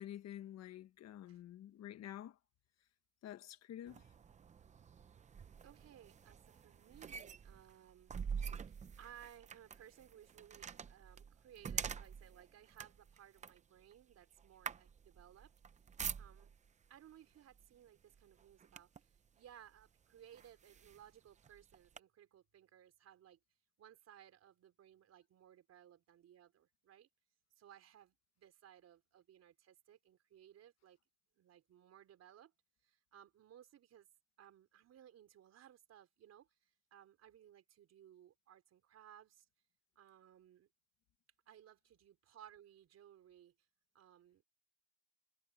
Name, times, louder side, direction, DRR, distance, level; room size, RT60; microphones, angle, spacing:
voice 1, 0.0-2.4 3.2-4.0, left 11 dB, 40° left, 1.4 m, -49 dB
sound 1, 3.9-16.7 17.5-17.8 18.1-19.2 19.8-19.9 20.3-22.0, right 6 dB, 20° right, 0.6 m, -47 dB
voice 2, 5.6-8.3 8.7-15.5 16.2-16.5 16.9-23.4 23.8-27.1 27.6-31.0 31.3-32.5 32.8-34.1 34.4-39.5 40.0-40.7 41.5-43.5 43.9-44.4, right 10 dB, 40° right, 4.4 m, -61 dB
cardioid pair, 155°, 40 cm